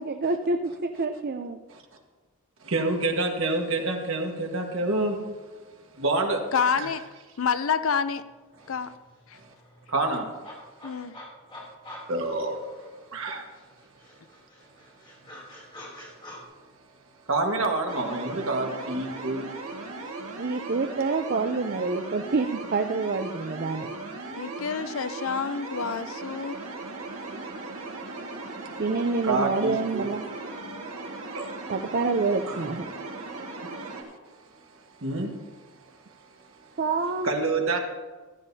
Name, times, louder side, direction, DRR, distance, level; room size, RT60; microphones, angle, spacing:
voice 1, 0.0-1.6 20.4-23.9 28.8-30.2 31.7-32.9 36.8-37.3, right 3 dB, 45° right, 7 dB, 0.5 m, -27 dB
voice 2, 2.6-5.2 5.9-6.4 6.8-6.9 9.4-9.5 9.9-10.3 12.1-12.6 13.1-13.5 17.3-19.5 27.3-27.4 29.2-30.1 31.3-31.5 32.5-32.7 35.0-35.3 37.2-37.8, right 2 dB, 65° right, 2 dB, 1.6 m, -27 dB
voice 3, 6.5-7.0 7.4-8.2 8.7-8.9 9.3-9.4 10.8-11.1 24.3-26.6, left 6 dB, 65° left, 12 dB, 0.5 m, -28 dB
sound 1, 8.2-8.3 8.6-13.2 13.5-16.4, left 1 dB, 25° left, 3.0 m, -47 dB
sound 2, 17.9-34.0, right 3 dB, 85° right, 1.9 m, -38 dB
14.5 x 13.0 x 2.8 m, 1.3 s
head